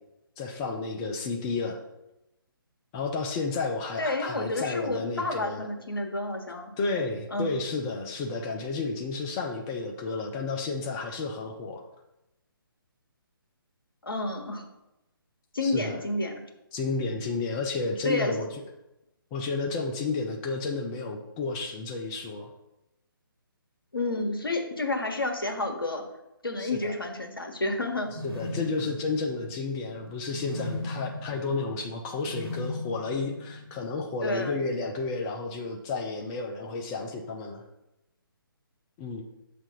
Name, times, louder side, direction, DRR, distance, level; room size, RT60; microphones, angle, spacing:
voice 1, 0.4-1.8 2.9-5.7 6.8-11.8 15.6-16.0 16.7-18.5 19.3-22.5 26.6-26.9 28.2-37.6 39.0-39.2, left 3 dB, 10° left, 2 dB, 0.3 m, -32 dB
voice 2, 4.0-6.7 7.3-7.6 14.0-14.6 15.5-16.3 18.0-18.3 23.9-26.0 26.4-28.1 34.2-34.6, left 2 dB, 70° left, 3 dB, 1.3 m, -30 dB
sound 1, 28.0-34.0, left 2 dB, 90° right, 1.3 m, -38 dB
7.2 x 3.4 x 5.3 m, 0.93 s
figure-of-eight pair, 140°, 12 cm